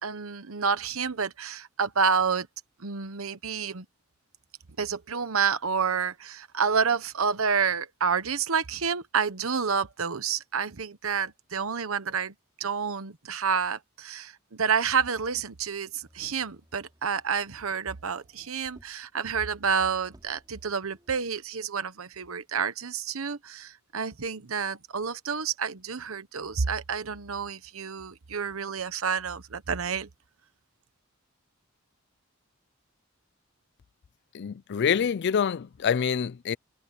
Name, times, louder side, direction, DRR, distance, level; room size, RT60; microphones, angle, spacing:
voice 1, 0.0-2.5 2.8-3.8 4.8-30.1, right 6 dB, 90° right, 1.1 m, -29 dB
Motor vehicle (road), 16.0-19.2 19.6-19.7 20.0-21.5 22.3-22.4, equal, 20° right, 5.0 m, -61 dB
voice 2, 34.3-36.6, left 7 dB, 55° left, 0.4 m, -26 dB
head